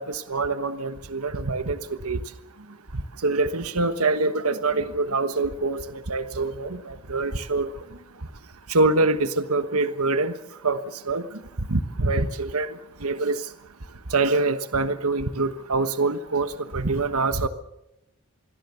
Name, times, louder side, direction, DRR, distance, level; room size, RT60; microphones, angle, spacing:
voice 1, 0.0-1.8 2.0-2.2 3.2-5.8 6.1-7.7 8.7-10.3 10.6-10.8 11.1-11.2 11.7-12.7 13.0-13.4 14.1-17.5, right 3 dB, 85° right, 11 dB, 1.3 m, -24 dB
26.5 x 21.5 x 7.0 m, 0.87 s
head